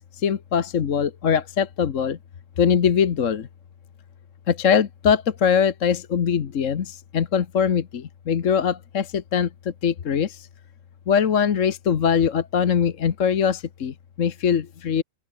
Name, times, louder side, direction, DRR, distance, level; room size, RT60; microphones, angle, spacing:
voice 1, 0.2-2.2 2.6-3.5 4.5-9.5 9.8-10.5 11.1-15.0, left 7 dB, 55° left, 1.4 m, -22 dB
open air
omnidirectional pair, 1.7 m